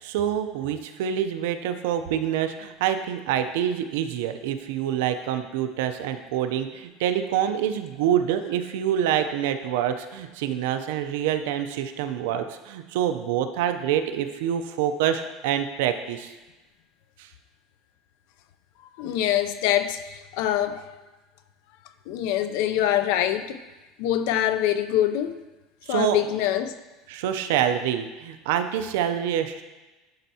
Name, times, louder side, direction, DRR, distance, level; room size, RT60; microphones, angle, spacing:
voice 1, 0.0-16.3 17.2-17.3 25.8-26.2 27.1-29.6, right 10 dB, 75° right, 8 dB, 0.5 m, -26 dB
voice 2, 19.0-21.0 22.1-23.6 24.0-25.4 25.9-26.7, left 11 dB, 60° left, 10 dB, 0.4 m, -24 dB
11.5 x 4.5 x 2.8 m, 1.1 s
cardioid pair, 175°, 0 cm